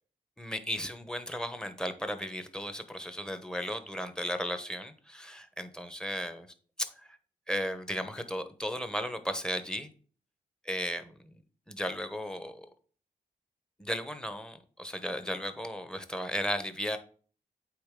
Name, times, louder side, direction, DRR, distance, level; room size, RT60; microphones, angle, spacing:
voice 1, 0.4-6.5 6.8-7.2 7.5-9.9 10.6-11.4 11.7-12.7 13.8-17.0, equal, 5° left, 9 dB, 1.0 m, -35 dB
8.7 x 4.0 x 3.7 m, 0.43 s
cardioid pair, 70°, 15 cm